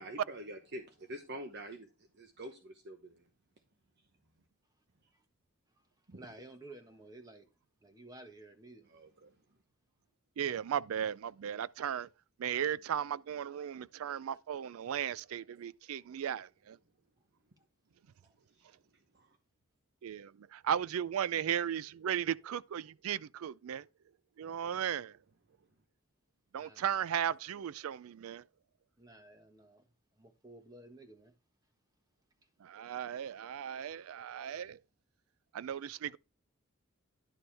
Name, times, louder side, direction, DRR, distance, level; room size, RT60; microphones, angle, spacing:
voice 1, 0.0-1.9 2.1-3.3 6.1-6.2 8.9-9.3 18.6-18.7 19.1-19.4, right 1 dB, 55° right, 1.0 m, -46 dB
voice 2, 6.1-7.5 7.8-8.9 17.6-17.7 18.2-18.3 26.6-26.9 29.0-29.9 30.2-31.3, right 2 dB, 20° right, 1.3 m, -53 dB
voice 3, 10.4-12.1 12.4-16.8 20.0-23.9 24.4-25.2 26.5-28.4 32.6-34.8 35.5-36.2, right 9 dB, 90° right, 0.4 m, -36 dB
11.0 x 6.8 x 3.4 m
head